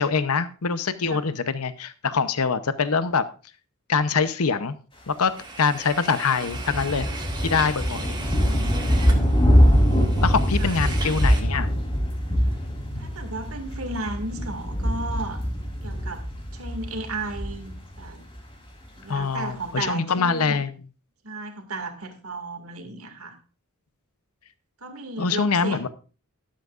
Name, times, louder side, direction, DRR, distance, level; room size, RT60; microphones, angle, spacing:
voice 1, 0.0-3.3 3.9-4.8 5.1-5.3 5.6-7.1 7.4-8.2 10.2-11.7 19.1-20.7 25.2-25.9, left 5 dB, 80° left, 13 dB, 0.8 m, -24 dB
sound 1, 5.4-11.4, right 3 dB, 20° right, 1.9 m, -38 dB
sound 2, 6.5-18.4, equal, 25° left, 3.4 m, -23 dB
voice 2, 7.9-9.1 10.1-10.8 13.0-15.4 15.8-16.3 16.5-18.2 19.0-20.6 21.2-23.4 24.8-25.9, right 2 dB, 70° right, 5 dB, 2.2 m, -35 dB
12.5 x 11.5 x 2.5 m, 0.35 s
head